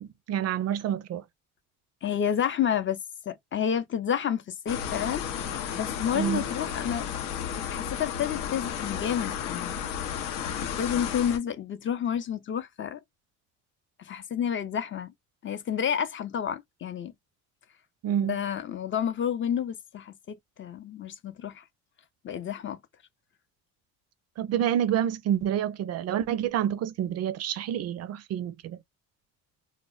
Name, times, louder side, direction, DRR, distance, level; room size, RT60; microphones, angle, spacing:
voice 1, 0.0-1.2 6.1-6.4 18.0-18.4 24.4-28.8, right 10 dB, 50° right, 0.4 m, -28 dB
voice 2, 2.0-3.0 3.3-5.2 5.7-7.1 7.5-9.8 10.8-13.0 14.0-15.1 15.4-17.1 18.2-21.6 22.2-22.8, left 8 dB, 40° left, 0.5 m, -30 dB
sound 1, 4.7-11.4, left 8 dB, 80° left, 0.7 m, -33 dB
2.1 x 2.0 x 3.7 m
cardioid pair, 100°, 32 cm